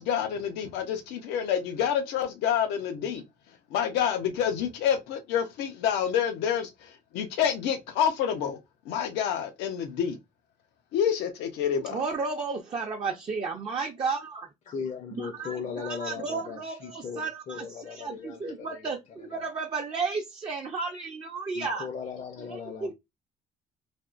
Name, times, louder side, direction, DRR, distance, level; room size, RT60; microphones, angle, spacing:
voice 1, 0.0-8.6 8.8-10.2 10.9-12.0, left 8 dB, 85° left, 0.7 m, -28 dB
voice 2, 11.9-14.5 15.1-21.9 22.8-22.9, right 4 dB, 30° right, 0.5 m, -33 dB
voice 3, 14.7-19.0 19.3-19.4 21.5-22.9, left 6 dB, 45° left, 0.6 m, -38 dB
3.4 x 2.3 x 2.4 m
cardioid pair, 110°, 17 cm